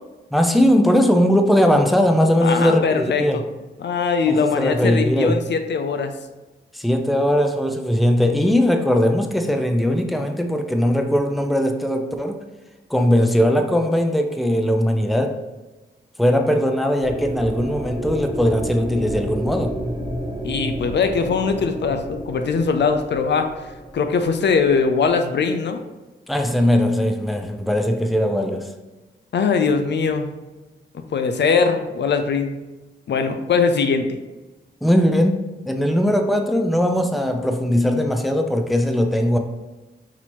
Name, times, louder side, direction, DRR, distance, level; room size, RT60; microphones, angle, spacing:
voice 1, 0.3-3.4 4.3-5.4 6.7-12.4 12.9-15.4 16.2-19.8 26.3-28.7 34.8-39.4, equal, ahead, 5 dB, 0.5 m, -19 dB
voice 2, 2.4-3.4 3.8-6.1 20.4-23.5 23.9-25.8 29.3-30.3 31.1-32.6 33.1-34.2, left 5 dB, 65° left, 7 dB, 0.5 m, -21 dB
sound 1, 17.0-25.1, right 1 dB, 25° right, 1.1 m, -30 dB
6.1 x 2.8 x 3.0 m, 1.1 s
cardioid pair, 80°, 19 cm